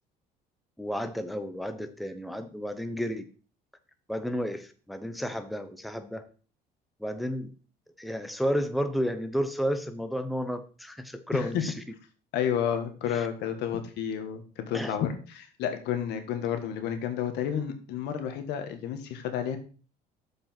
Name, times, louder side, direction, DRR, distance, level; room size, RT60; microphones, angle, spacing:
voice 1, 0.8-3.2 4.1-6.3 7.0-7.5 8.0-11.7 13.1-13.3 14.7-15.0, equal, ahead, 8 dB, 0.9 m, -32 dB
voice 2, 11.3-11.6 12.3-19.6, left 9 dB, 85° left, 7 dB, 1.6 m, -31 dB
7.1 x 5.2 x 5.8 m, 0.39 s
cardioid pair, 110°, 17 cm